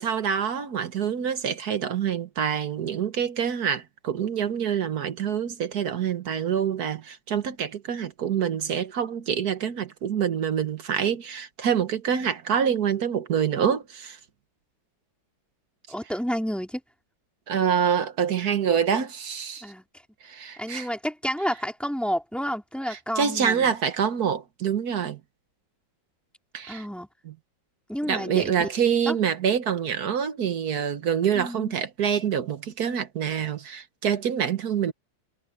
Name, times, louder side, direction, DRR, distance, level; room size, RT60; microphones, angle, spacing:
voice 1, 0.0-14.2 17.5-19.7 20.2-20.9 22.9-25.2 26.5-26.8 28.1-34.9, right 8 dB, 55° right, 1.5 m, -26 dB
voice 2, 15.9-16.8 19.6-19.9 20.6-23.8 26.7-27.1 27.9-28.5 29.1-29.2 31.3-31.8, equal, ahead, 4.3 m, -30 dB
omnidirectional pair, 2.1 m